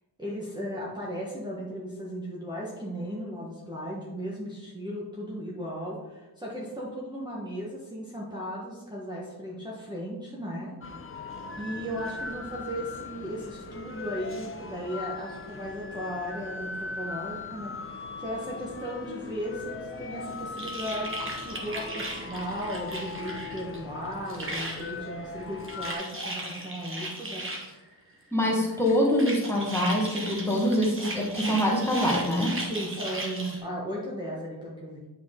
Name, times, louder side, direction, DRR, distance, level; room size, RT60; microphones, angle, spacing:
voice 1, 0.2-10.8 11.6-27.5 32.6-35.1, equal, 10° right, -6 dB, 1.2 m, -36 dB
sound 1, 10.8-25.9, left 3 dB, 30° left, 0.7 m, -39 dB
sound 2, 20.6-23.8 24.1-24.9 25.4-27.7 28.6-33.6, right 1 dB, 30° right, 1.3 m, -37 dB
voice 2, 28.3-32.5, equal, 5° left, -3 dB, 1.5 m, -25 dB
8.5 x 4.7 x 3.8 m, 1.2 s
wide cardioid pair, 140°, 40 cm